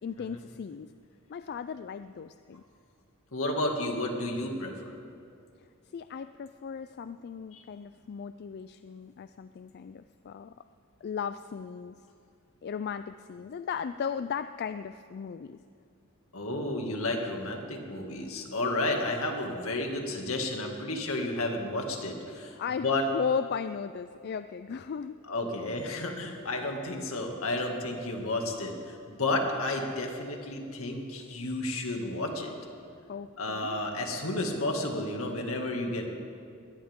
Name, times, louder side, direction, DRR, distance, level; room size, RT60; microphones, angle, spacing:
voice 1, 0.0-0.9 1.3-2.6 5.9-10.5 11.0-12.0 12.6-15.6 22.6-25.2 25.5-25.7 33.1-33.8, left 6 dB, 50° left, 11 dB, 0.3 m, -36 dB
voice 2, 3.3-4.9 7.5-7.6 16.3-23.1 25.3-32.5 33.4-36.1, left 2 dB, 70° left, 2 dB, 2.2 m, -32 dB
22.0 x 17.5 x 3.7 m, 2.4 s
head